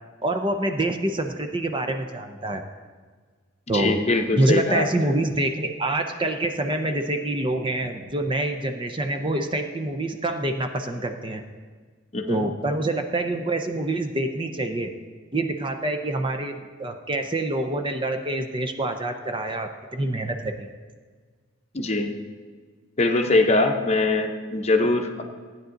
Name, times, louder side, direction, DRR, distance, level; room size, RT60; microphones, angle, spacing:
voice 1, 0.2-2.6 3.7-4.0 4.3-11.4 12.3-14.9 15.3-20.7, right 2 dB, 25° right, 6 dB, 0.7 m, -26 dB
voice 2, 3.7-4.9 12.1-12.4 21.7-22.1 23.0-25.2, left 2 dB, 35° left, 5 dB, 0.8 m, -22 dB
15.0 x 9.3 x 3.9 m, 1.5 s
head